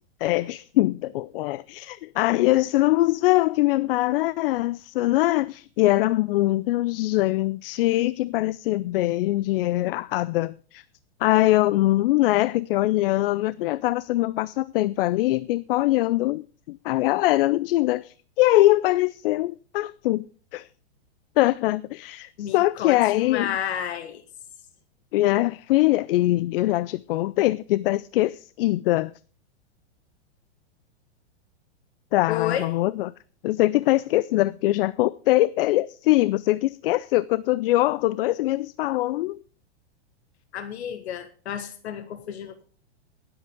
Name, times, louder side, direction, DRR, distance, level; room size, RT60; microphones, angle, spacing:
voice 1, 0.2-10.8 11.2-20.2 20.5-20.7 21.4-23.6 25.1-29.1 32.1-33.1 33.4-39.4, left 17 dB, 55° left, 0.5 m, -22 dB
voice 2, 22.4-24.2 32.3-32.7 40.5-42.7, left 9 dB, 70° left, 1.5 m, -31 dB
19.5 x 8.0 x 3.7 m
hypercardioid pair, 125°, 34 cm